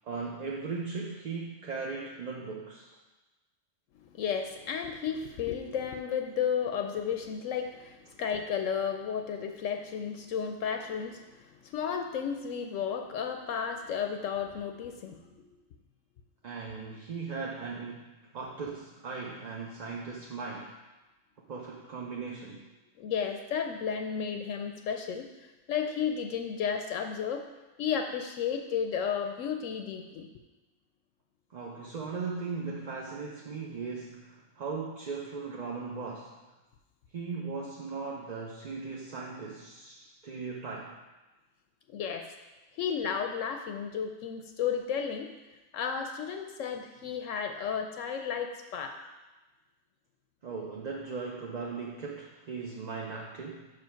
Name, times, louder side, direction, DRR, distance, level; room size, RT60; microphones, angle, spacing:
voice 1, 0.0-2.9 16.4-20.7 21.5-22.6 31.5-36.3 37.1-41.0 50.4-53.7, right 4 dB, 45° right, -2 dB, 0.6 m, -38 dB
voice 2, 4.0-15.5 23.0-27.4 27.8-30.3 41.9-42.3 42.8-45.3 45.7-49.0, left 7 dB, 75° left, 5 dB, 0.9 m, -33 dB
6.4 x 5.1 x 5.7 m, 1.1 s
omnidirectional pair, 1.4 m